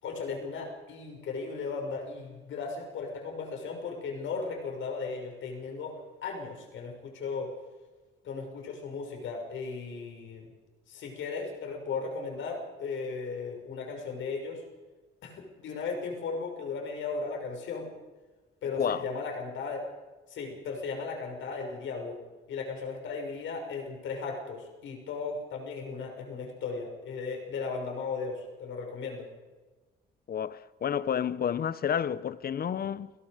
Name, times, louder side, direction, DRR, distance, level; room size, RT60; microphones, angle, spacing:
voice 1, 0.0-7.5 8.2-10.5 10.9-14.6 15.2-17.9 18.6-19.9 20.3-22.2 22.5-29.3, left 4 dB, 75° left, 6.3 m, -36 dB
voice 2, 30.3-33.1, left 8 dB, 50° left, 0.9 m, -30 dB
29.0 x 18.5 x 5.2 m
cardioid pair, 90°, 20 cm